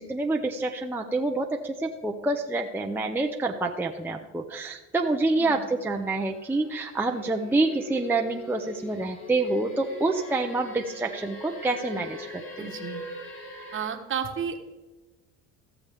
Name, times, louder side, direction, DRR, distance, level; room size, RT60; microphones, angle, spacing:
voice 1, 0.0-12.4, right 2 dB, 5° right, 2 dB, 0.6 m, -27 dB
sound 1, 4.9-13.9, left 1 dB, 40° left, 2.5 m, -42 dB
voice 2, 12.6-13.0 13.7-14.6, right 7 dB, 35° right, 5 dB, 1.2 m, -32 dB
15.0 x 7.0 x 3.4 m, 1.1 s
supercardioid pair, 105°, 34 cm